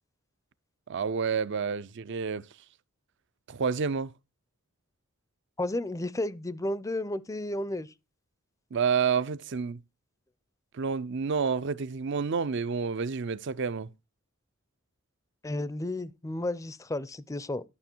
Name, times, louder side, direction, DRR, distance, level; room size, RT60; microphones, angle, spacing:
voice 1, 0.9-2.4 3.5-4.1 8.7-9.8 10.7-13.9, right 6 dB, 55° right, 0.5 m, -29 dB
voice 2, 5.6-7.9 15.4-17.6, left 1 dB, 15° left, 0.5 m, -32 dB
11.5 x 6.1 x 4.4 m
head